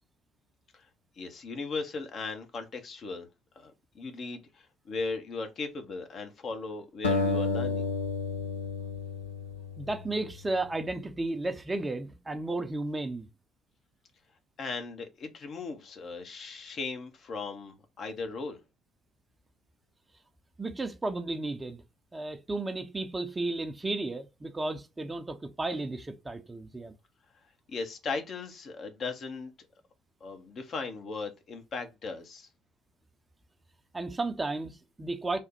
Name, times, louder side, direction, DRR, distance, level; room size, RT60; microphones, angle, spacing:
voice 1, 1.2-3.3 3.6-7.9 14.6-18.6 27.7-29.5 30.2-32.5, left 4 dB, 45° left, 0.7 m, -37 dB
sound 1, 7.0-10.3, left 4 dB, 80° left, 0.5 m, -31 dB
voice 2, 9.8-13.3 20.6-21.8 22.1-26.9 33.9-35.4, right 2 dB, 20° right, 0.5 m, -33 dB
3.3 x 2.1 x 4.2 m
figure-of-eight pair, 50°, 0 cm